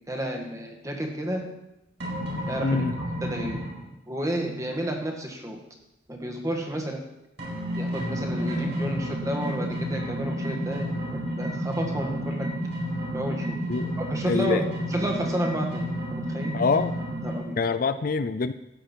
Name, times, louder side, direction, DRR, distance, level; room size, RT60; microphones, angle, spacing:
voice 1, 0.1-1.5 2.5-3.6 4.1-5.6 6.1-7.0 7.7-12.5 13.1-13.6 14.0-16.6 17.2-17.6, equal, 20° right, 1 dB, 1.7 m, -31 dB
sound 1, 2.0-3.8 7.4-17.4, equal, 75° right, 4.8 m, -31 dB
voice 2, 2.6-2.9 13.7-14.0 14.3-14.6 16.5-16.9 17.6-18.5, left 4 dB, 50° left, 12 dB, 0.4 m, -25 dB
14.0 x 9.1 x 4.5 m, 0.89 s
head